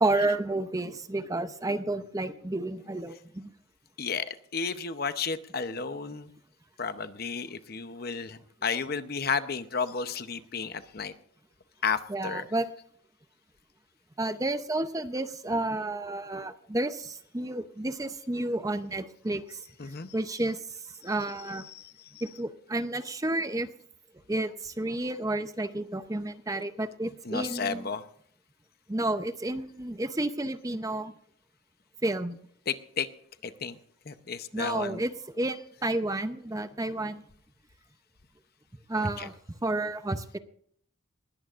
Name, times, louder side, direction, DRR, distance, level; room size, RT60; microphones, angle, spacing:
voice 1, 0.0-3.5 12.1-12.7 14.2-19.6 20.1-20.6 21.0-21.6 22.2-23.7 24.3-27.9 28.9-31.1 32.0-32.4 34.5-35.1 35.4-37.2 38.9-39.3 39.6-40.4, right 2 dB, 15° right, 10 dB, 0.7 m, -31 dB
voice 2, 4.0-6.3 6.8-11.1 11.8-12.4 19.8-20.1 21.0-22.4 27.2-28.0 32.7-33.1 33.4-33.7 34.1-35.1 39.0-39.3, left 5 dB, 50° left, 11 dB, 0.8 m, -33 dB
20.5 x 17.0 x 2.5 m, 0.64 s
head